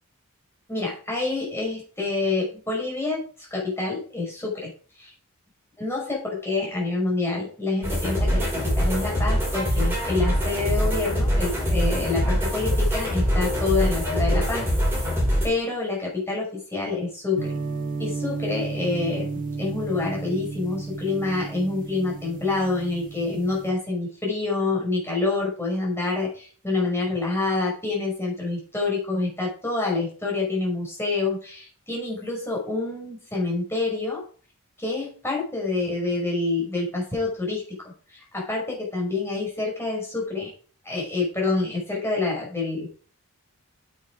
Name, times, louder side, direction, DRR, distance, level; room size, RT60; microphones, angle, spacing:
voice 1, 0.7-4.7 5.0-5.1 5.8-14.7 15.4-17.6 18.0-19.3 19.6-34.2 34.8-37.6 38.1-40.5 40.8-42.9, left 3 dB, 10° left, -3 dB, 5.3 m, -27 dB
sound 1, 7.8-15.5, equal, 10° right, 5.2 m, -23 dB
sound 2, 17.4-23.7, right 4 dB, 40° right, 2.0 m, -33 dB
8.9 x 7.4 x 4.9 m, 0.42 s
head